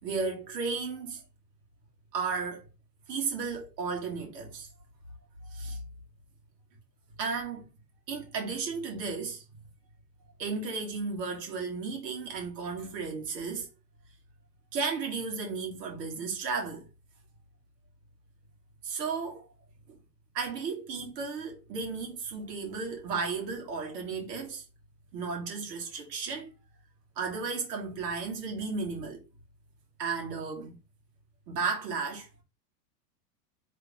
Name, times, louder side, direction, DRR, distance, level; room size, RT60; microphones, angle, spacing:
voice 1, 0.0-1.2 2.1-2.7 3.1-4.7 5.4-5.8 7.2-7.7 8.1-9.4 10.4-13.7 14.7-16.9 18.8-19.5 19.9-20.0 20.3-24.6 25.1-26.5 27.2-29.3 30.0-30.8 31.5-32.3, right 4 dB, 75° right, 2.4 m, -34 dB
3.8 x 3.4 x 3.7 m
hypercardioid pair, 120°, 49 cm